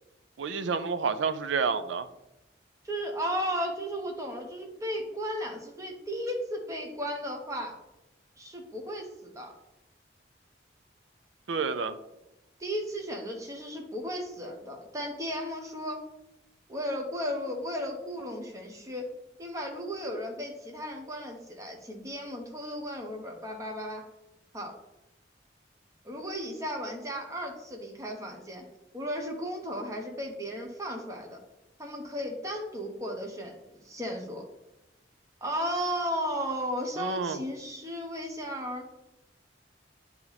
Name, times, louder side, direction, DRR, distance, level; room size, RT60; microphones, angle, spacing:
voice 1, 0.4-2.1 11.5-12.0 37.0-37.4, right 5 dB, 85° right, 11 dB, 0.5 m, -29 dB
voice 2, 2.8-7.8 8.4-9.5 12.6-16.0 16.7-19.1 19.4-24.0 24.5-24.7 26.0-28.6 28.9-31.4 31.8-34.4 35.4-38.9, equal, 15° right, 2 dB, 0.9 m, -35 dB
8.7 x 2.9 x 4.0 m, 0.92 s
head